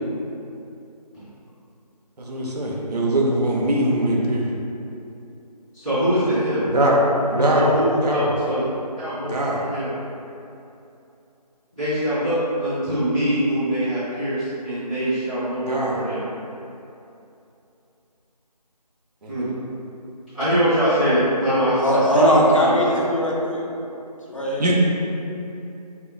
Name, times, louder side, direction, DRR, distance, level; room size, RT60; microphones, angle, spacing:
voice 1, 2.2-4.5 6.7-7.0 7.3-8.3 9.2-9.6 15.6-16.0 19.2-19.6 24.6-24.7, right 1 dB, 70° right, -3 dB, 0.5 m, -22 dB
voice 2, 5.7-6.6 7.5-8.6 9.0-9.3 9.6-9.9 11.8-16.2 19.3-19.5 20.3-22.2 22.6-23.0, equal, ahead, -24 dB, 0.5 m, -23 dB
voice 3, 21.8-23.6 24.3-24.7, equal, 50° left, -5 dB, 0.5 m, -19 dB
2.1 x 2.0 x 3.6 m, 2.7 s
figure-of-eight pair, 170°, 21 cm